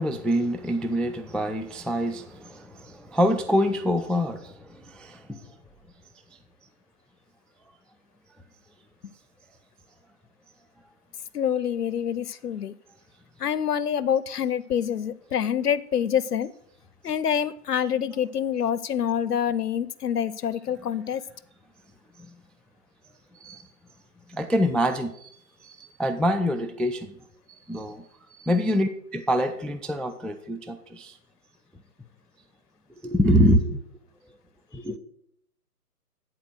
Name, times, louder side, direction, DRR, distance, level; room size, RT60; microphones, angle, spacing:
voice 1, 0.0-5.5 22.2-22.4 23.3-23.7 24.3-27.2 27.7-28.0 28.3-31.2 33.0-33.8 34.7-35.0, equal, ahead, 0.3 m, -26 dB
voice 2, 11.3-12.7 13.4-16.5 17.0-21.2, left 8 dB, 80° left, 0.7 m, -26 dB
10.5 x 4.2 x 6.4 m
hypercardioid pair, 180°, 47 cm